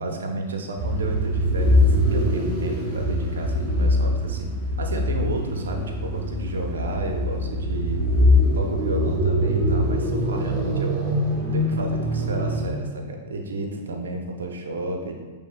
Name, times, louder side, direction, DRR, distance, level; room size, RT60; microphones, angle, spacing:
voice 1, 0.0-8.0 8.5-15.2, right 2 dB, 85° right, 3 dB, 0.5 m, -32 dB
sound 1, 0.8-12.9, left 1 dB, 40° right, 1.3 m, -23 dB
7.2 x 3.3 x 2.2 m, 1.4 s
hypercardioid pair, 115°, 0 cm